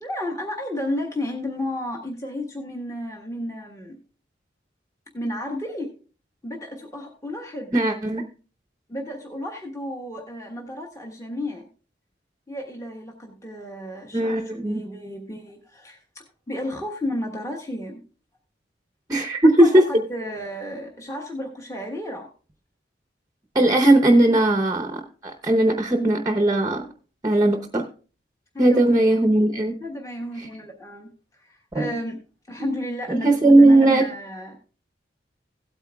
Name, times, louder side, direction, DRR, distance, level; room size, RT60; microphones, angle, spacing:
voice 1, 0.0-4.0 5.1-5.9 6.4-7.7 8.9-11.7 12.5-18.0 19.6-22.3 28.5-29.2 29.8-31.1 31.4-32.2 32.5-34.6, left 1 dB, 15° left, 1 dB, 1.3 m, -32 dB
voice 2, 7.7-8.2 14.1-14.8 19.1-19.8 23.5-25.0 25.4-26.9 27.2-27.8 28.6-29.7 30.4-30.5 31.7-31.9 32.6-32.7 33.1-34.0, right 1 dB, 20° right, 5 dB, 0.8 m, -18 dB
16.5 x 8.7 x 2.3 m, 0.37 s
head